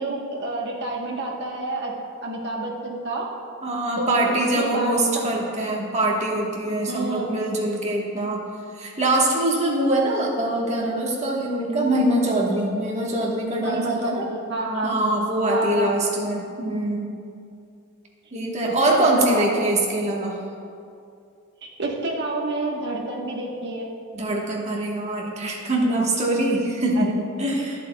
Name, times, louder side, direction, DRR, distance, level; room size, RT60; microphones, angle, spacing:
voice 1, 0.0-1.9 2.2-3.2 4.0-5.3 6.9-7.3 13.6-14.9 15.5-15.9 18.6-19.6 21.6-23.9 26.9-27.1, right 2 dB, 60° right, -1 dB, 1.1 m, -28 dB
voice 2, 3.6-8.4 8.7-14.3 14.8-17.1 18.3-20.4 24.1-27.8, right 1 dB, 35° right, -2 dB, 1.2 m, -23 dB
11.0 x 7.9 x 2.2 m, 2.4 s
head